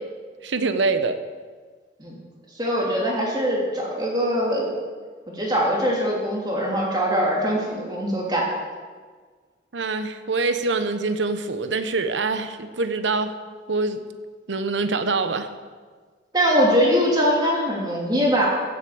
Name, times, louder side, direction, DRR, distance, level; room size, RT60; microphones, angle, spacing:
voice 1, 0.4-1.1 9.7-13.3 13.7-14.0 14.5-15.5, right 3 dB, 80° right, 9 dB, 1.0 m, -24 dB
voice 2, 2.6-4.7 5.3-8.5 16.3-18.5, equal, 20° right, -3 dB, 3.1 m, -22 dB
15.5 x 8.1 x 8.0 m, 1.5 s
head